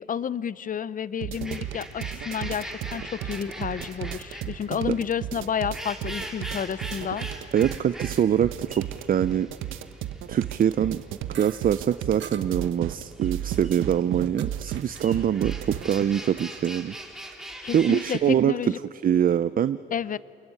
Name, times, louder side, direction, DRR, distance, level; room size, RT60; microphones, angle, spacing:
voice 1, 0.0-7.3 17.6-18.8 19.9-20.2, left 8 dB, 45° left, 18 dB, 0.7 m, -30 dB
sound 1, 1.2-16.0, right 12 dB, 85° right, 1.1 m, -34 dB
sound 2, 1.3-18.2, right 1 dB, ahead, 4.2 m, -42 dB
voice 2, 7.5-9.5 10.3-11.0 11.4-17.0 17.7-18.5 19.0-19.8, right 9 dB, 45° right, 14 dB, 0.6 m, -24 dB
sound 3, 11.3-11.8 12.2-12.5 13.5-14.5 14.8-15.1 15.3-15.8 16.1-17.4, right 9 dB, 65° right, 1.3 m, -44 dB
28.5 x 21.0 x 9.7 m, 2.5 s
cardioid pair, 90°, 20 cm